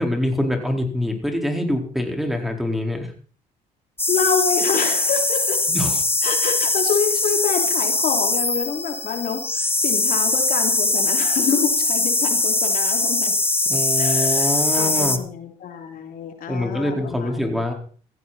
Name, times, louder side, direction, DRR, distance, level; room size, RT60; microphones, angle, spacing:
voice 1, 0.0-3.1 5.7-6.0 13.7-15.2 16.5-17.7, left 1 dB, ahead, 3 dB, 4.6 m, -24 dB
sound 1, 4.0-15.2, left 2 dB, 15° left, 1.5 m, -21 dB
voice 2, 4.1-5.6 6.2-13.3 14.0-17.4, left 7 dB, 65° left, 4 dB, 3.2 m, -27 dB
16.5 x 15.0 x 4.3 m, 0.43 s
supercardioid pair, 75°, 16 cm